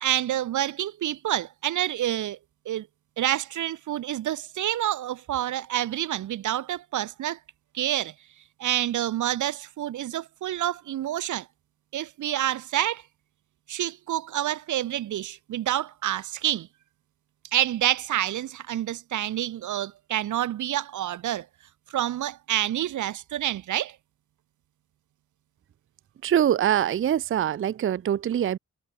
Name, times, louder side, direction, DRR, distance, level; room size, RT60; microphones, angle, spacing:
voice 1, 0.0-2.4 2.7-2.9 3.2-7.4 7.7-8.1 8.6-11.5 11.9-13.0 13.7-16.7 17.5-21.5 21.9-24.0, right 12 dB, 75° right, 0.7 m, -28 dB
voice 2, 26.2-28.6, right 10 dB, 45° right, 0.5 m, -24 dB
cardioid pair, 105°, 30 cm